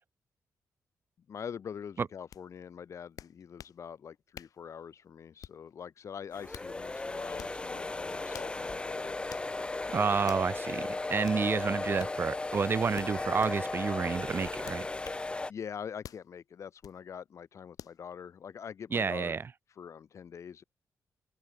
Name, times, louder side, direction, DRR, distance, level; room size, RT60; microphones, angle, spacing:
voice 1, 1.3-9.2 15.5-19.4 19.8-20.6, left 7 dB, 55° left, 4.4 m, -44 dB
sound 1, 2.3-2.4 3.2-3.8 4.3-4.6 5.4-5.7 6.3-6.7 7.3-7.6 8.3-8.6 9.3-9.5 10.3-10.5 11.2-11.4 12.0-12.2 12.9-13.6 14.6-15.2 16.0-16.3 16.8-17.0 17.8-18.0, left 10 dB, 85° left, 2.4 m, -48 dB
sound 2, 6.3-15.5, left 2 dB, 15° left, 2.5 m, -36 dB
voice 2, 9.9-14.9 18.9-19.4, right 5 dB, 40° right, 1.4 m, -30 dB
wide cardioid pair, 160°, 6 cm